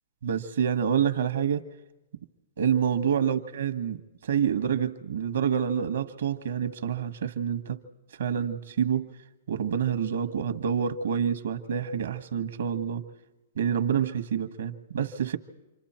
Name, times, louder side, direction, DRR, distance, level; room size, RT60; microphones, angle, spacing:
voice 1, 0.2-1.6 2.6-7.8 8.2-9.1 9.5-13.0 13.6-15.4, right 8 dB, 80° right, 1.3 m, -27 dB
28.5 x 24.5 x 4.4 m
hypercardioid pair, 130°, 0 cm